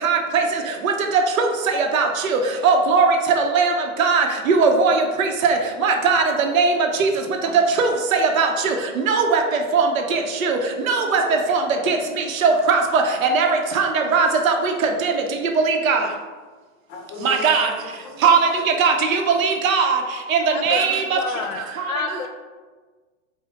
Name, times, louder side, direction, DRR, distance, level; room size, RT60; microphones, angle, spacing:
voice 1, 0.0-0.4 1.4-1.5 1.9-3.7 4.0-5.6 5.8-6.7 7.0-7.1 7.8-7.9 8.2-8.7 9.1-9.4 9.7-10.6 10.9-11.2 11.5-11.6 11.9-12.0 12.4-13.0 13.3-13.5 13.7-14.7 15.0-15.1 15.6-16.0 17.2-17.7 18.2-18.4 18.8-20.0 20.3-21.2, right 5 dB, 80° right, 3 dB, 0.8 m, -19 dB
voice 2, 10.9-11.4 11.7-12.6 16.9-18.4 18.7-18.8 19.3-19.4, left 3 dB, 40° left, 1 dB, 1.0 m, -39 dB
voice 3, 20.5-22.3, left 6 dB, 85° left, 7 dB, 0.7 m, -30 dB
5.1 x 2.2 x 3.8 m, 1.4 s
hypercardioid pair, 125°, 40 cm